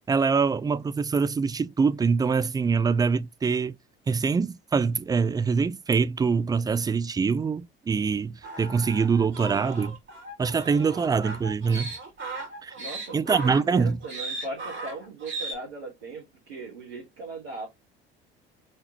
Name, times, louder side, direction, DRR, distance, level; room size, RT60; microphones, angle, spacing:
voice 1, 0.1-3.7 4.1-10.0 10.4-11.9 12.6-12.7 13.1-14.0, right 5 dB, 15° right, 0.4 m, -24 dB
sound 1, 8.4-15.6, right 3 dB, 40° right, 2.8 m, -37 dB
voice 2, 12.8-17.7, right 3 dB, 80° right, 1.6 m, -38 dB
4.1 x 3.8 x 2.9 m
figure-of-eight pair, 60°, 30 cm